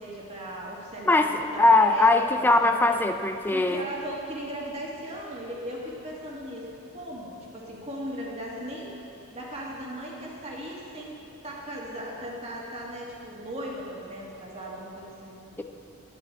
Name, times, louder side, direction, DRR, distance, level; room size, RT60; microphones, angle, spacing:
voice 1, 0.0-3.0 3.5-8.9 9.3-11.2 11.4-15.4, right 1 dB, 30° right, -4 dB, 2.0 m, -37 dB
voice 2, 1.1-3.8 15.6-15.7, left 2 dB, 10° left, 6 dB, 0.4 m, -21 dB
11.0 x 10.5 x 4.6 m, 2.7 s
head